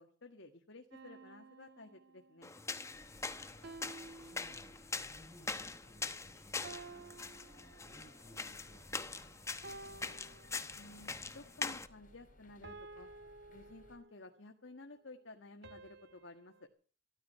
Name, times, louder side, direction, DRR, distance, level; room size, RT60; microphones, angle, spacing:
voice 1, 0.0-2.5 10.7-13.1 13.5-16.5, left 2 dB, 75° left, 4 dB, 1.7 m, -54 dB
sound 1, 0.9-2.6 3.6-5.1 6.6-8.3 9.6-11.1 12.6-14.4 15.6-16.7, right 3 dB, 60° right, 1.7 m, -53 dB
sound 2, 2.4-11.9, left 4 dB, 15° left, 1.0 m, -43 dB
sound 3, 2.9-14.0, left 1 dB, 45° left, 3.7 m, -63 dB
voice 2, 3.0-3.7 4.2-10.1, equal, 35° right, 4 dB, 7.3 m, -62 dB
15.0 x 13.5 x 5.6 m, 0.41 s
head